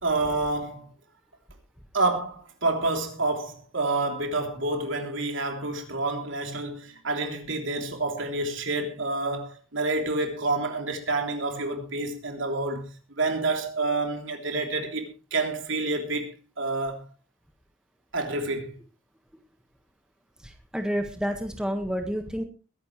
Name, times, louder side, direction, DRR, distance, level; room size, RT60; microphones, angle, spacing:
voice 1, 0.0-0.9 1.9-17.0 18.1-18.7, right 2 dB, 65° right, 3.3 m, -28 dB
voice 2, 20.4-22.4, equal, 5° right, 1.6 m, -29 dB
22.0 x 11.0 x 3.3 m
head